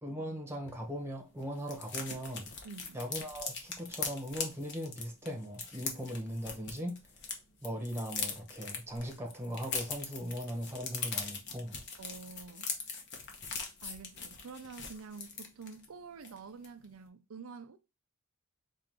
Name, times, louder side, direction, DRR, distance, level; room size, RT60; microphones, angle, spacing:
voice 1, 0.0-2.5 2.9-7.0 7.6-11.7, equal, 10° right, 1.1 m, -39 dB
sound 1, 0.6-0.8 1.0-1.1 1.4-7.3 7.6-15.8 16.2-16.4 16.6-16.9, left 5 dB, 55° left, 1.0 m, -41 dB
voice 2, 2.6-3.0 12.0-12.7 13.8-17.8, right 5 dB, 80° right, 0.5 m, -48 dB
4.6 x 2.5 x 3.6 m
head